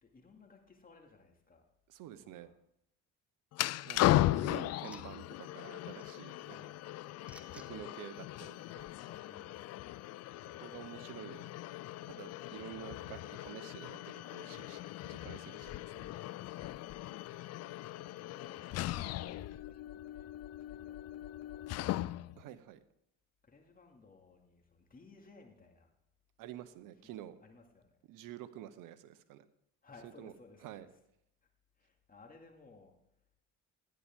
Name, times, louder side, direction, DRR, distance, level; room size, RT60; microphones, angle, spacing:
voice 1, 0.0-1.6 2.2-2.5 6.5-6.7 9.1-9.8 18.2-20.3 20.6-22.2 23.4-25.9 27.0-28.0 29.8-30.9 31.8-32.9, left 3 dB, 25° left, 2 dB, 2.3 m, -60 dB
voice 2, 1.9-2.5 3.8-6.6 7.5-8.8 10.4-11.5 12.0-16.1 22.4-22.8 26.4-27.3 28.1-29.4 30.2-30.3 30.6-30.9, right 12 dB, 65° right, 13 dB, 0.9 m, -49 dB
sound 1, 3.5-22.4, left 15 dB, 50° left, 0.4 m, -37 dB
sound 2, 3.7-9.1, equal, 5° right, 1.1 m, -63 dB
12.0 x 9.6 x 3.6 m, 0.79 s
supercardioid pair, 80°, 35 cm